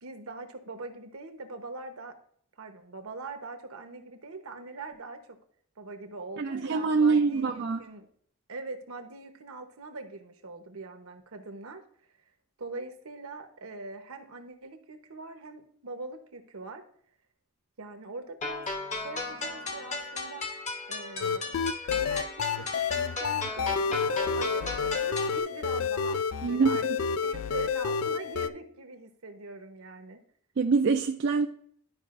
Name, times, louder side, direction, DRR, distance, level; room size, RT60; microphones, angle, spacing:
voice 1, 0.0-2.2 2.6-5.4 5.8-8.1 8.5-11.8 12.6-16.8 17.8-18.7 19.0-20.5 20.9-26.2 26.5-26.8 27.2-30.2, right 3 dB, 75° right, 6 dB, 1.0 m, -42 dB
voice 2, 6.4-7.8 26.4-26.8 30.6-31.5, right 4 dB, 50° right, 4 dB, 0.4 m, -24 dB
sound 1, 18.4-25.4, left 3 dB, 30° left, 0.9 m, -36 dB
sound 2, 21.2-28.5, left 6 dB, 65° left, 0.3 m, -29 dB
12.0 x 5.0 x 2.5 m, 0.63 s
head